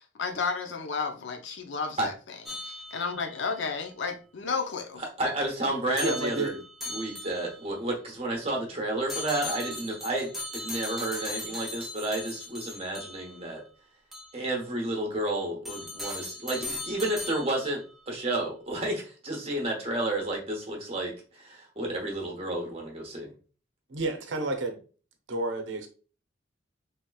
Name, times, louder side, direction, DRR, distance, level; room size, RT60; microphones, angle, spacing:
voice 1, 0.2-2.1 2.6-5.0, left 4 dB, 70° left, 0.5 m, -32 dB
sound 1, 2.5-3.4 6.0-7.7 9.1-13.4 14.1-14.3 15.7-17.8, left 2 dB, ahead, 0.4 m, -38 dB
voice 2, 5.2-6.5 6.9-13.6 14.3-17.8 18.1-23.3, right 1 dB, 30° right, 0.9 m, -31 dB
voice 3, 6.0-6.6 23.9-24.8 25.3-25.9, right 2 dB, 75° right, 0.6 m, -30 dB
3.3 x 2.9 x 2.3 m
head